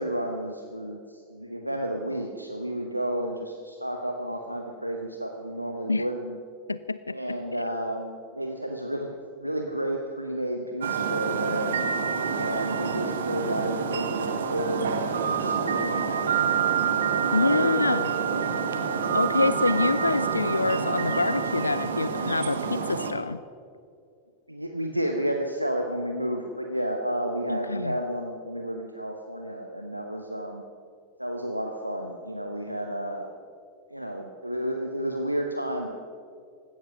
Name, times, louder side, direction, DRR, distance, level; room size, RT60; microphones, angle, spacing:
voice 1, 0.0-6.4 7.1-11.7 12.4-15.1 15.4-19.1 24.5-30.6 31.2-33.3 33.9-35.9, equal, 90° right, 3 dB, 1.0 m, -32 dB
voice 2, 6.7-7.2 17.3-18.1 19.1-23.4 27.5-28.0, left 3 dB, 80° left, 15 dB, 0.3 m, -26 dB
sound 1, 10.8-23.1, right 6 dB, 65° right, 1.4 m, -27 dB
16.0 x 12.5 x 6.0 m, 2.3 s
figure-of-eight pair, 90°, 0 cm